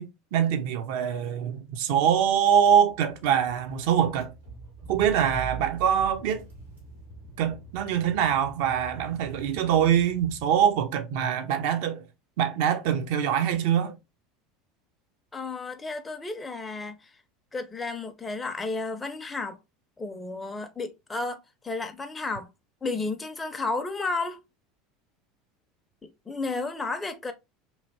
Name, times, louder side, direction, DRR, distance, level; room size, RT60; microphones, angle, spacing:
voice 1, 0.0-4.3 4.9-6.5 7.4-12.0 12.4-13.9, right 9 dB, 60° right, 0.5 m, -24 dB
Car / Engine, 2.4-10.8, right 5 dB, 90° right, 1.4 m, -43 dB
voice 2, 15.3-17.2 17.5-19.6 20.0-22.5 22.8-24.4 26.0-27.3, left 3 dB, 15° left, 0.5 m, -32 dB
3.1 x 2.9 x 2.6 m
figure-of-eight pair, 75°, 0 cm